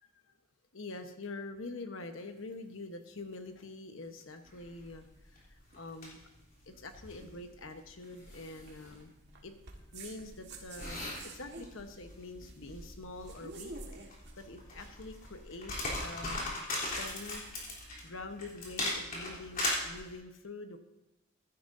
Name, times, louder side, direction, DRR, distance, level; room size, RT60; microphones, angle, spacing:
voice 1, 0.7-6.2 6.7-9.1 9.4-9.5 9.9-11.0 11.3-13.7 14.4-17.6 18.0-20.8, left 2 dB, 70° left, 7 dB, 1.1 m, -45 dB
sound 1, 2.2-15.4, right 3 dB, 60° right, 1.7 m, -53 dB
sound 2, 4.5-20.1, left 2 dB, 40° left, 3.4 m, -40 dB
15.5 x 11.0 x 2.7 m, 0.95 s
head